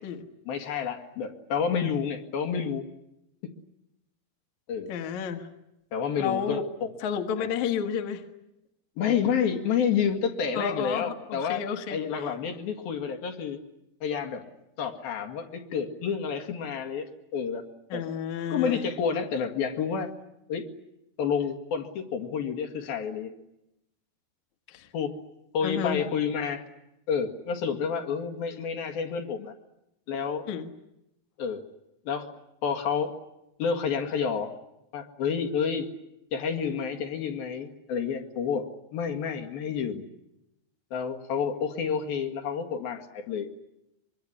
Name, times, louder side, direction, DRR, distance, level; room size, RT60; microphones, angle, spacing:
voice 1, 0.5-2.8 4.7-4.9 5.9-6.9 7.4-7.5 9.0-11.6 11.9-13.6 14.0-14.4 14.8-17.1 17.3-17.7 17.9-18.1 18.5-20.1 20.5-20.7 21.2-23.3 24.9-25.1 25.5-26.6 27.1-29.5 30.1-30.4 31.4-31.6 32.1-32.3 32.6-33.1 33.6-34.5 34.9-35.9 36.3-40.0 40.9-43.5, left 6 dB, 70° left, 4 dB, 3.7 m, -29 dB
voice 2, 4.9-5.5 6.2-6.6 7.0-8.2 10.5-12.3 17.9-18.9 24.7-24.9 25.6-26.0 30.5-30.7, left 8 dB, 55° left, 5 dB, 2.6 m, -31 dB
25.0 x 23.5 x 9.8 m, 0.88 s
omnidirectional pair, 4.4 m